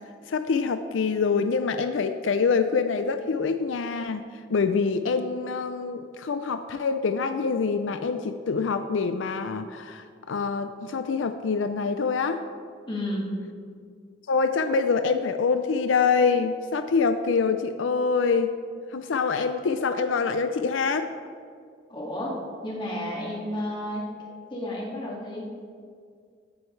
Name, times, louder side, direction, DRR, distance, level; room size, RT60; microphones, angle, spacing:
voice 1, 0.3-4.2 4.5-12.4 14.3-18.5 18.9-21.1, left 5 dB, 85° left, 9 dB, 0.5 m, -25 dB
voice 2, 12.9-13.3 21.9-24.1 24.5-25.5, left 1 dB, 25° left, -3 dB, 2.1 m, -32 dB
15.0 x 9.0 x 3.2 m, 2.1 s
head